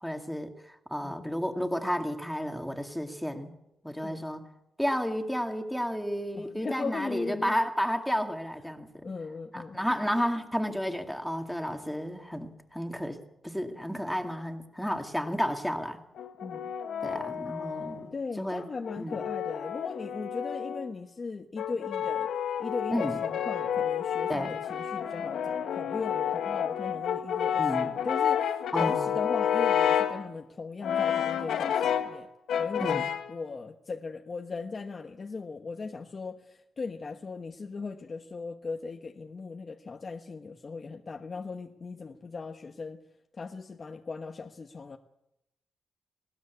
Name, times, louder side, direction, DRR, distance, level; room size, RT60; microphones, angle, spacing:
voice 1, 0.0-3.5 3.8-4.4 4.8-9.1 9.5-13.2 13.4-16.0 17.0-18.1 18.4-18.7 19.0-19.2 22.9-23.2 24.3-24.6 27.6-27.9 28.7-29.1 32.8-33.0, equal, ahead, 5 dB, 2.2 m, -32 dB
voice 2, 6.3-7.6 9.0-9.8 16.4-16.7 18.1-22.3 22.6-32.3 32.6-33.0 33.3-43.0 43.4-45.0, left 4 dB, 35° left, 4 dB, 1.2 m, -38 dB
Brass instrument, 16.2-18.1 18.8-20.9 21.6-30.2 30.8-32.2 32.5-33.3, left 9 dB, 90° left, 1.6 m, -30 dB
20.0 x 19.0 x 8.3 m, 0.87 s
wide cardioid pair, 140°, 0 cm